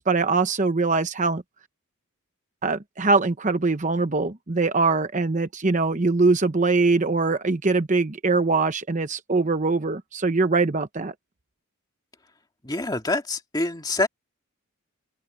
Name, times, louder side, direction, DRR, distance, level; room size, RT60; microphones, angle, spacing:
voice 1, 0.0-1.4 2.6-11.1, right 3 dB, 35° right, 0.8 m, -22 dB
voice 2, 12.6-14.1, left 2 dB, 20° left, 2.2 m, -26 dB
open air
head